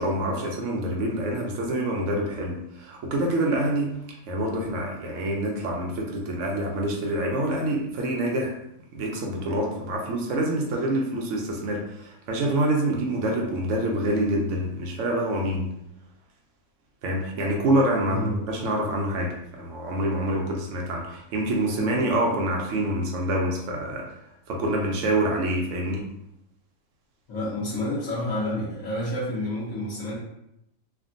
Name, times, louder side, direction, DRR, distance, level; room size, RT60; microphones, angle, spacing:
voice 1, 0.0-3.9 4.3-8.5 8.9-15.6 17.0-24.1 24.5-26.0, right 1 dB, 65° right, 0 dB, 0.8 m, -26 dB
voice 2, 27.3-30.2, left 1 dB, 70° left, -8 dB, 1.2 m, -29 dB
3.4 x 2.1 x 2.5 m, 0.82 s
omnidirectional pair, 1.6 m